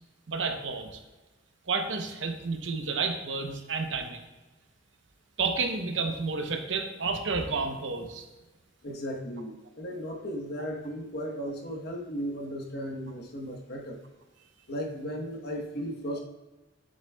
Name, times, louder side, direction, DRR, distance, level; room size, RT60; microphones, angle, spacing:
voice 1, 0.3-1.0 1.7-4.2 5.4-8.2, right 4 dB, 70° right, 5 dB, 0.8 m, -31 dB
voice 2, 8.8-14.0 14.7-16.2, equal, 55° left, 1 dB, 1.1 m, -36 dB
7.8 x 6.9 x 2.3 m, 1.1 s
head